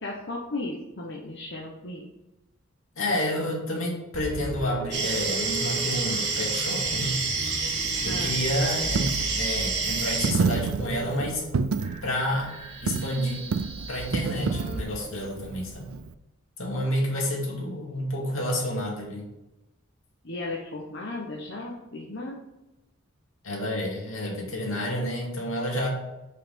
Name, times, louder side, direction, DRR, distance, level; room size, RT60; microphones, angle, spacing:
voice 1, 0.0-2.1 8.0-8.4 20.2-22.4, left 2 dB, 55° left, -2 dB, 1.0 m, -35 dB
voice 2, 3.0-7.2 8.0-11.5 12.0-12.5 12.8-13.4 13.9-15.9 16.6-19.3 23.4-25.9, left 1 dB, 70° left, -2 dB, 2.4 m, -29 dB
sound 1, 4.1-14.8, right 2 dB, 30° right, 0.9 m, -39 dB
sound 2, 4.9-10.3, right 4 dB, 55° right, 1.5 m, -28 dB
Coin (dropping), 7.6-16.1, right 5 dB, 85° right, 0.4 m, -31 dB
5.7 x 5.6 x 5.2 m, 0.98 s
head